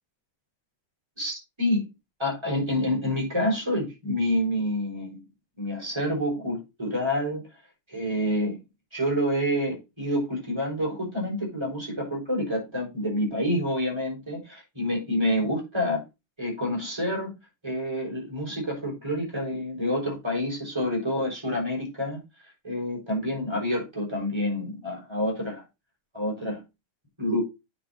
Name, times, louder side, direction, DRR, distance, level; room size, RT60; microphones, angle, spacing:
voice 1, 1.2-1.8 2.2-5.2 5.6-7.4 7.9-8.6 8.9-16.0 16.4-17.3 17.6-22.2 22.6-25.6 26.1-26.6 27.2-27.4, left 1 dB, 10° right, -3 dB, 5.6 m, -28 dB
9.2 x 5.6 x 4.4 m, 0.25 s
omnidirectional pair, 2.3 m